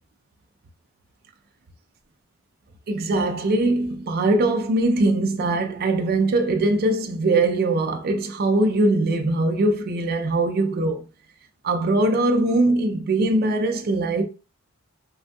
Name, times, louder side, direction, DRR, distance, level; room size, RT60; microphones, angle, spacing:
voice 1, 2.9-11.0 11.6-14.2, right 2 dB, 45° right, 0.4 m, -21 dB
3.3 x 2.6 x 2.2 m
head